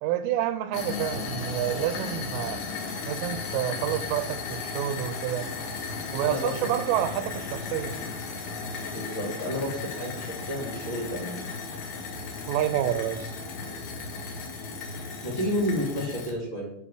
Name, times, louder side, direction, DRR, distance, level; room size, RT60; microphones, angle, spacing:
voice 1, 0.0-2.6 3.1-5.5 6.1-7.9 12.5-13.3, right 12 dB, 85° right, 11 dB, 3.3 m, -28 dB
sound 1, 0.7-16.3, left 4 dB, 65° left, 3.6 m, -35 dB
voice 2, 6.1-6.7 8.9-11.5 14.2-14.4 15.2-16.7, left 1 dB, 35° left, -3 dB, 2.3 m, -31 dB
11.5 x 4.6 x 6.9 m, 0.77 s
omnidirectional pair, 5.6 m